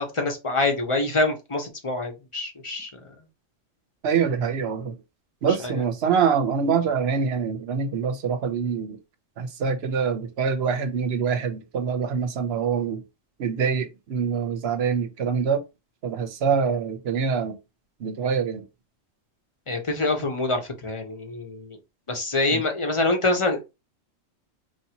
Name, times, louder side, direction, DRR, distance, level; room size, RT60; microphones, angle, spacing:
voice 1, 0.0-3.1 5.6-5.8 19.7-21.8 22.1-23.7, left 2 dB, 25° left, 0.9 m, -26 dB
voice 2, 4.0-5.0 5.4-9.0 9.4-13.0 13.4-15.6 16.0-17.6 18.0-18.6 22.5-22.6, right 6 dB, 55° right, 0.9 m, -25 dB
4.7 x 2.8 x 2.9 m
omnidirectional pair, 1.3 m